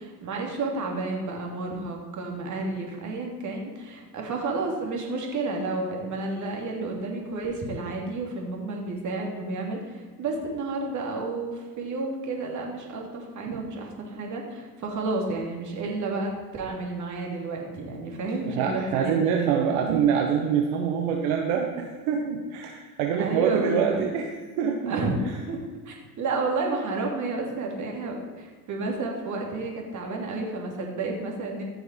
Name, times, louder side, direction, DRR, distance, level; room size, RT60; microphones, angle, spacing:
voice 1, 0.0-20.0 23.2-24.1 24.9-25.6 25.8-31.6, right 3 dB, 35° right, 0 dB, 2.9 m, -31 dB
voice 2, 18.5-25.0, right 7 dB, 65° right, 2 dB, 1.4 m, -25 dB
15.0 x 6.4 x 4.6 m, 1.5 s
supercardioid pair, 105°, 49 cm